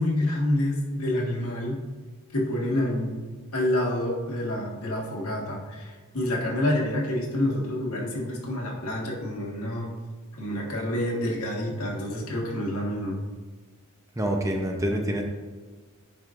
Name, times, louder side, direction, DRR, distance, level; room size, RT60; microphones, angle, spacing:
voice 1, 0.0-1.8 2.3-3.2 3.5-9.9 10.3-13.2, left 1 dB, 80° left, -2 dB, 1.6 m, -28 dB
voice 2, 14.2-15.2, right 1 dB, 15° right, 2 dB, 0.7 m, -26 dB
9.2 x 5.4 x 2.5 m, 1.4 s
head